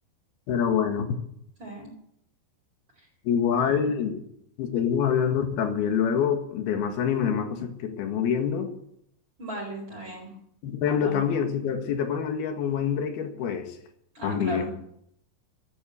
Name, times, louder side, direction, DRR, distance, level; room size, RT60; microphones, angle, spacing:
voice 1, 0.5-1.2 3.3-4.2 4.6-8.7 10.6-13.8 14.2-14.6, left 7 dB, 80° left, 5 dB, 3.7 m, -26 dB
voice 2, 1.6-1.9 3.0-3.1 9.4-10.3 10.8-11.3 14.1-14.7, right 1 dB, 30° right, -2 dB, 4.9 m, -36 dB
14.0 x 10.5 x 8.2 m, 0.72 s
omnidirectional pair, 4.4 m